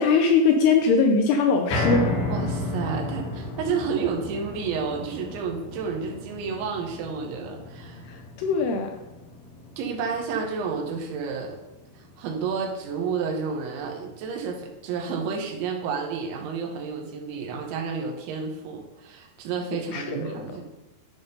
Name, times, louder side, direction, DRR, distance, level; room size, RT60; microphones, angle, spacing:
voice 1, 0.0-2.1 8.1-8.9 19.9-20.3, left 5 dB, 85° left, 4 dB, 2.4 m, -21 dB
sound 1, 1.7-14.0 14.4-14.5 14.9-15.0, left 1 dB, 70° left, 2.1 m, -34 dB
voice 2, 2.3-8.0 9.8-11.6 12.0-20.6, right 5 dB, 80° right, 1 dB, 3.5 m, -30 dB
11.5 x 3.8 x 5.3 m, 0.99 s
omnidirectional pair, 5.4 m